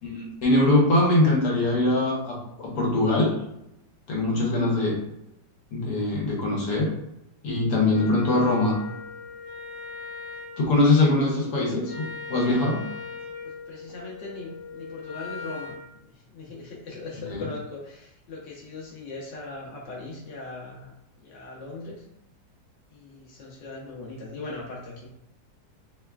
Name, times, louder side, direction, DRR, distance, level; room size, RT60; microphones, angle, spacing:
voice 1, 0.0-3.3 4.1-4.9 5.7-6.9 7.4-8.7 10.6-12.0 12.3-12.8, left 2 dB, 65° left, -3 dB, 1.4 m, -22 dB
Wind instrument woodwind instrument, 7.9-15.9, left 4 dB, 90° left, 0.6 m, -40 dB
voice 2, 13.4-20.9 21.2-22.0 22.9-25.1, left 3 dB, 45° left, -4 dB, 1.0 m, -39 dB
3.5 x 3.3 x 2.3 m, 0.84 s
omnidirectional pair, 1.8 m